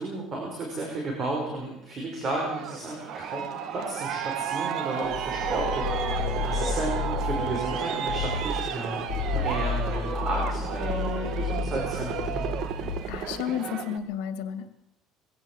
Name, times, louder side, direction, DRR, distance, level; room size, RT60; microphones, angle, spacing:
voice 1, 0.0-12.5, right 2 dB, 30° right, 0 dB, 5.2 m, -33 dB
Aircraft, 2.3-14.0, right 8 dB, 50° right, 1.7 m, -33 dB
sound 1, 5.1-7.7 8.0-8.6 9.0-13.2, left 5 dB, 65° left, 5.9 m, -31 dB
sound 2, 5.4-13.7, right 2 dB, 80° right, 6.4 m, -39 dB
voice 2, 13.1-14.7, left 9 dB, 85° left, 10 dB, 2.6 m, -32 dB
22.0 x 16.0 x 7.5 m, 0.83 s
cardioid pair, 160°, 0 cm